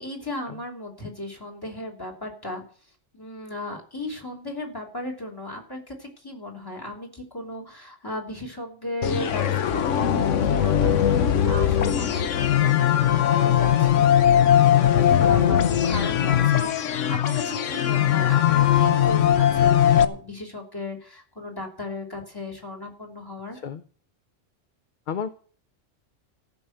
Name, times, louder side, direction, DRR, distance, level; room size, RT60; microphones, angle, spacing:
voice 1, 0.0-2.6 3.1-23.6, left 2 dB, 20° left, 2 dB, 2.9 m, -36 dB
sound 1, 9.0-20.0, left 10 dB, 85° left, 1.2 m, -20 dB
voice 2, 15.2-15.6 23.5-23.8 25.1-25.3, left 7 dB, 50° left, 11 dB, 0.7 m, -33 dB
14.5 x 6.2 x 7.8 m, 0.43 s
omnidirectional pair, 1.2 m